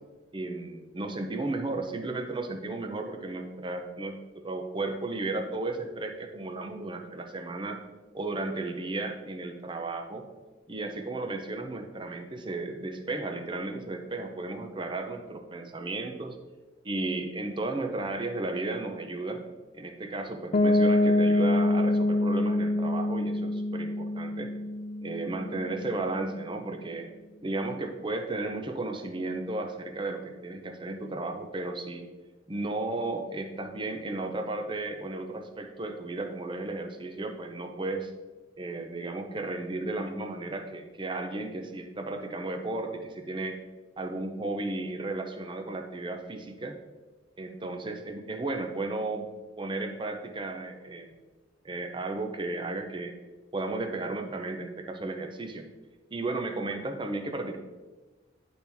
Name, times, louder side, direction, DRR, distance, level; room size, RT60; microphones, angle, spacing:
voice 1, 0.3-7.8 8.1-10.2 10.7-16.4 16.8-19.4 19.7-24.5 25.0-27.1 27.4-32.0 32.5-38.1 38.6-43.6 44.0-46.8 47.4-49.3 49.6-51.1 51.6-53.1 53.5-55.7 56.1-57.6, right 2 dB, 25° right, 4 dB, 0.7 m, -34 dB
Piano, 20.5-26.2, left 1 dB, 40° left, 0.4 m, -26 dB
10.0 x 4.4 x 3.5 m, 1.2 s
head